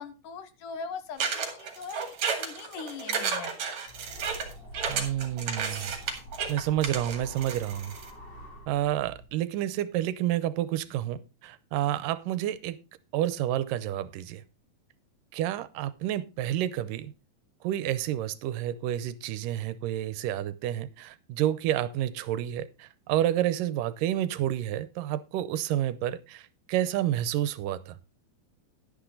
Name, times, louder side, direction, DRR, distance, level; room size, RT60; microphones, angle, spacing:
voice 1, 0.0-2.0 2.4-3.8, left 5 dB, 75° left, 2.7 m, -40 dB
sound 1, 1.2-8.1, right 6 dB, 60° right, 3.3 m, -32 dB
sound 2, 3.9-9.3, equal, 35° left, 3.3 m, -45 dB
voice 2, 4.9-6.0 6.5-7.9 8.7-12.8 13.1-14.4 15.3-17.1 17.6-28.0, right 12 dB, 80° right, 2.4 m, -29 dB
11.5 x 10.0 x 3.8 m
omnidirectional pair, 3.8 m